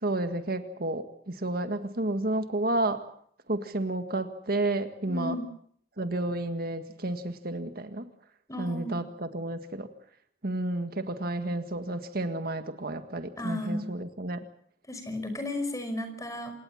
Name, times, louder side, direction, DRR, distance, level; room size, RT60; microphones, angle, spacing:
voice 1, 0.0-3.0 3.5-5.3 6.0-8.1 8.6-9.9 10.4-14.4, right 2 dB, 55° right, 8 dB, 1.8 m, -31 dB
voice 2, 5.0-5.5 8.5-9.0 13.4-13.9 14.9-16.5, left 1 dB, 20° left, 8 dB, 5.2 m, -34 dB
27.5 x 18.5 x 7.3 m, 0.64 s
head